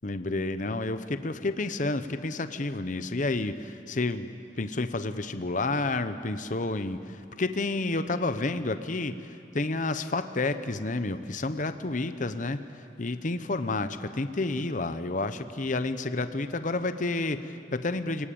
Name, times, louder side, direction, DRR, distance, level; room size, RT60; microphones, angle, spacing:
voice 1, 0.0-4.3 4.6-18.3, left 2 dB, 45° left, 10 dB, 0.9 m, -30 dB
28.5 x 19.0 x 8.7 m, 2.6 s
head